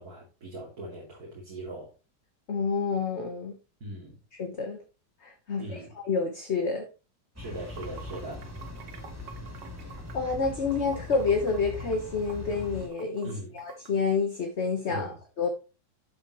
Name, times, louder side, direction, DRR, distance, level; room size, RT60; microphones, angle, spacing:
voice 1, 0.0-1.9 3.8-4.2 5.5-6.0 7.4-8.5 13.2-13.6 14.9-15.2, right 1 dB, 55° right, 3.3 m, -40 dB
voice 2, 2.5-3.5 4.4-4.8 5.2-5.8 6.0-6.9 10.1-15.5, left 4 dB, 40° left, 1.4 m, -28 dB
sound 1, 7.4-12.9, left 3 dB, 10° right, 3.3 m, -41 dB
Water / Sink (filling or washing), 7.4-13.9, right 6 dB, 85° right, 1.9 m, -49 dB
11.5 x 7.2 x 3.1 m
omnidirectional pair, 1.9 m